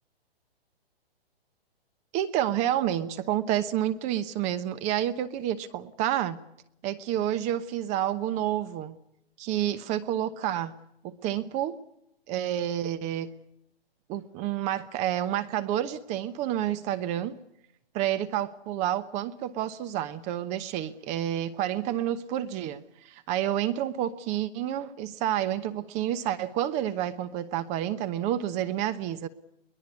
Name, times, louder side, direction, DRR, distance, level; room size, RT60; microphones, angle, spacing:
voice 1, 2.1-6.4 6.8-8.9 9.4-10.7 11.0-11.8 12.3-13.3 14.1-17.4 17.9-29.3, right 11 dB, 20° right, 1.0 m, -29 dB
23.0 x 20.5 x 8.4 m
hypercardioid pair, 140°, 30 cm